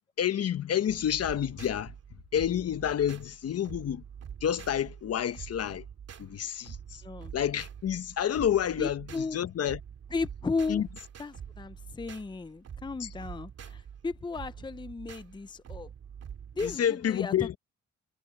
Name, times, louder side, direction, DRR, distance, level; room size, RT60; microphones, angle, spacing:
voice 1, 0.2-1.9 2.3-4.0 4.4-5.8 6.2-7.0 7.3-9.8 10.7-10.9 13.0-13.1 16.6-17.6, left 9 dB, 55° left, 1.1 m, -29 dB
sound 1, 0.9-16.8, right 8 dB, 55° right, 2.8 m, -46 dB
voice 2, 7.0-7.3 8.8-9.4 10.1-10.9 11.2-15.9 16.5-17.6, left 4 dB, 15° left, 0.7 m, -35 dB
cardioid pair, 90°, 30 cm